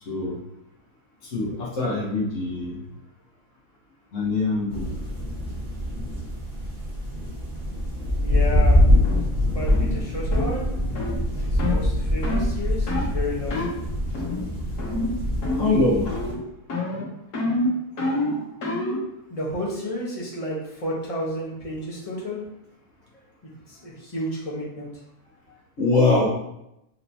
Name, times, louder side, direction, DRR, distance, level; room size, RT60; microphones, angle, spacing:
voice 1, 0.0-0.4 1.2-2.8 4.1-4.9 15.6-16.2 18.0-18.5 18.8-18.9 25.8-26.3, left 2 dB, 55° left, -5 dB, 1.5 m, -24 dB
sound 1, 4.7-16.3, left 1 dB, 25° right, 1.4 m, -24 dB
voice 2, 8.2-8.8 9.4-10.9 11.4-13.7 19.3-22.5 23.7-24.9 25.5-25.6, left 1 dB, 30° left, -5 dB, 0.9 m, -31 dB
sound 2, 9.0-9.2 9.7-9.9 10.3-10.5 10.9-11.2 11.6-11.8 12.2-12.5 12.9-13.1 13.5-13.7 14.1-14.5 14.8-15.1 15.4-15.8 16.1-16.4 16.7-19.0, left 2 dB, 80° left, 1.6 m, -27 dB
4.4 x 3.0 x 2.7 m, 0.83 s
omnidirectional pair, 1.6 m